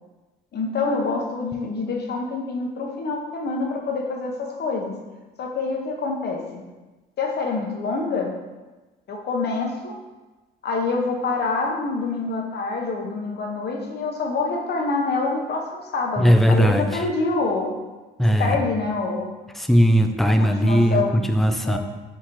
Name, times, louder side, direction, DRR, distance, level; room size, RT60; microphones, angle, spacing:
voice 1, 0.5-4.9 5.4-6.6 7.2-8.3 9.1-10.0 10.6-17.8 18.3-19.3 20.4-21.3 21.6-21.8, left 3 dB, 55° left, 0 dB, 0.9 m, -26 dB
voice 2, 16.2-17.0 18.2-18.6 19.6-21.8, equal, ahead, 6 dB, 0.3 m, -18 dB
4.6 x 3.7 x 3.0 m, 1.2 s
cardioid pair, 90°, 20 cm